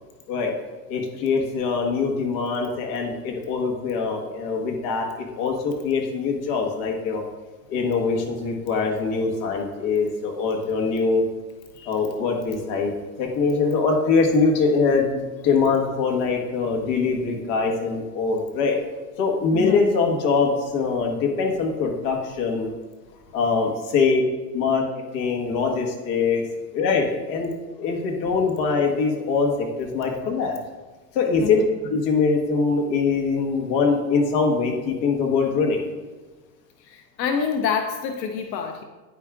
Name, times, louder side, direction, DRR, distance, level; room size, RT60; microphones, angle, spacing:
voice 1, 0.9-7.2 7.7-11.2 11.8-18.8 19.2-22.7 23.3-24.2 24.5-24.8 25.1-26.4 26.7-30.5 31.1-35.8, left 4 dB, 45° left, 1 dB, 1.4 m, -23 dB
voice 2, 19.5-19.8 23.1-23.3 31.4-31.7 36.8-38.8, left 6 dB, 85° left, 5 dB, 0.8 m, -28 dB
9.9 x 4.8 x 2.5 m, 1.3 s
supercardioid pair, 130°, 49 cm